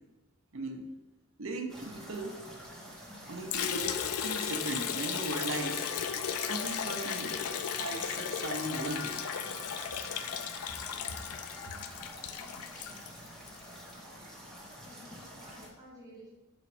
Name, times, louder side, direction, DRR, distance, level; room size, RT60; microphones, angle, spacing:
voice 1, 0.5-0.9 1.4-2.4 3.3-5.8 6.5-7.5 7.8-9.2, right 2 dB, 65° right, 4 dB, 0.8 m, -38 dB
sound 1, 1.7-15.7, equal, ahead, 1.1 m, -47 dB
Liquid, 3.5-13.6, left 8 dB, 90° left, 0.4 m, -35 dB
sound 2, 5.4-11.7, left 3 dB, 75° left, 1.0 m, -48 dB
voice 2, 12.9-13.3 14.8-16.3, equal, 15° right, -5 dB, 1.5 m, -53 dB
6.0 x 4.1 x 4.9 m, 1.1 s
head